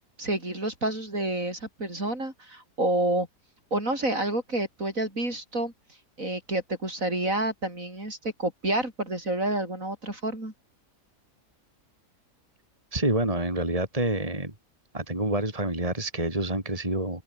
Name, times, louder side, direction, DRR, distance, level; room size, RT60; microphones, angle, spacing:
voice 1, 0.2-3.3 3.7-5.7 6.2-10.5, right 1 dB, 55° right, 7.8 m, -29 dB
voice 2, 12.9-14.5 14.9-17.2, right 1 dB, 20° right, 3.8 m, -27 dB
open air
omnidirectional pair, 1.7 m